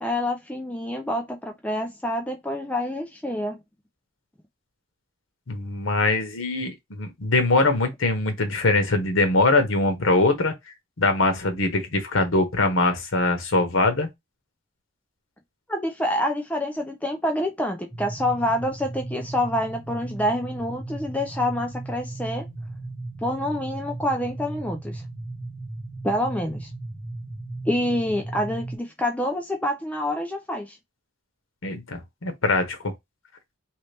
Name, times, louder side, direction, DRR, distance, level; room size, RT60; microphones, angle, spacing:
voice 1, 0.0-3.6 15.7-22.5 23.2-25.0 26.0-26.7 27.7-30.8, left 1 dB, 5° left, 0.4 m, -27 dB
voice 2, 5.5-10.5 11.0-14.1 31.6-32.9, left 2 dB, 85° left, 1.0 m, -22 dB
sound 1, 17.9-28.8, right 2 dB, 25° left, 1.4 m, -36 dB
3.1 x 2.8 x 3.3 m
head